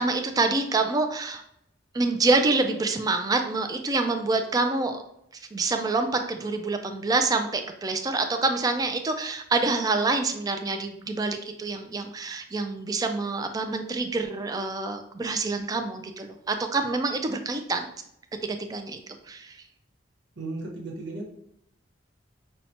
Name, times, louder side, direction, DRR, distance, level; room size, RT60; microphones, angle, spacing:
voice 1, 0.0-1.4 1.9-5.0 5.5-17.9 18.4-19.0 19.3-19.5, right 3 dB, 20° right, 6 dB, 0.3 m, -26 dB
voice 2, 20.4-21.3, right 2 dB, 90° right, 0 dB, 1.0 m, -35 dB
5.6 x 2.1 x 2.8 m, 0.76 s
head